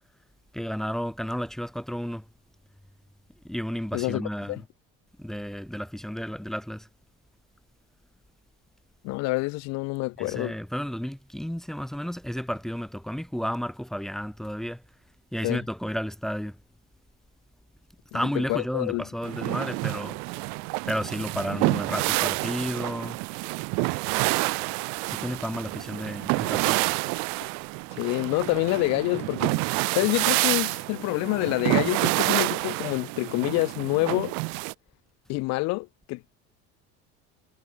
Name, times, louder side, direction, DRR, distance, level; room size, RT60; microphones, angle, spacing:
voice 1, 0.5-2.3 3.4-4.6 5.2-6.9 10.2-14.8 15.3-16.6 18.1-20.2 20.9-23.2 25.1-26.9, equal, ahead, 2.0 m, -32 dB
voice 2, 9.0-10.5 15.4-15.6 18.1-18.2 18.5-19.0 27.9-29.6 30.0-34.4 35.3-36.3, left 23 dB, 60° left, 1.9 m, -27 dB
sound 1, 19.2-34.7, right 34 dB, 65° right, 0.6 m, -28 dB
cardioid pair, 165°, 30 cm